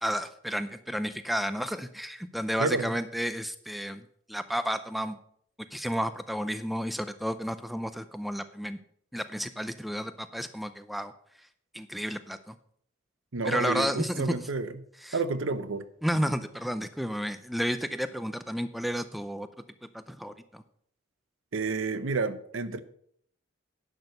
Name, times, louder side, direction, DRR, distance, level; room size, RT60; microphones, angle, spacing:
voice 1, 0.0-5.2 5.7-8.8 9.1-11.1 11.7-12.5 13.4-14.5 15.0-15.2 16.0-19.5 19.9-20.6, equal, ahead, 12 dB, 0.4 m, -32 dB
voice 2, 2.6-2.9 13.3-14.7 15.1-15.8 21.5-22.8, right 3 dB, 80° right, 14 dB, 0.8 m, -30 dB
11.0 x 6.2 x 6.5 m, 0.67 s
head